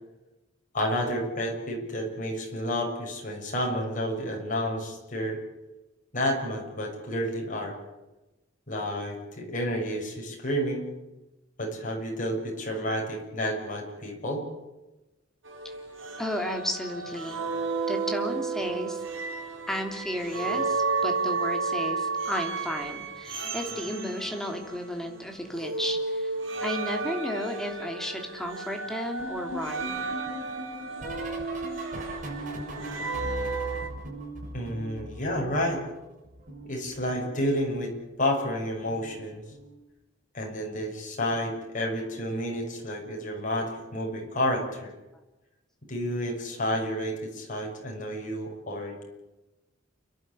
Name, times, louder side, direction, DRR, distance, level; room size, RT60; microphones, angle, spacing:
voice 1, 0.7-5.4 6.1-7.7 8.7-10.9 11.6-14.4 34.5-35.8 36.6-39.4 40.3-44.9 45.9-49.0, equal, 45° left, 0 dB, 6.7 m, -30 dB
sound 1, 15.5-25.2 25.5-33.9, right 4 dB, 85° right, 4.3 m, -32 dB
voice 2, 16.2-17.4 17.9-19.0 19.7-26.3 26.6-30.0, equal, ahead, 2 dB, 3.2 m, -33 dB
sound 2, 29.2-36.0 36.2-37.8 38.8-39.2 39.4-39.8 41.3-41.6 41.9-42.2 43.7-43.8, equal, 40° right, 7.5 m, -40 dB
29.5 x 12.0 x 9.9 m, 1.0 s
head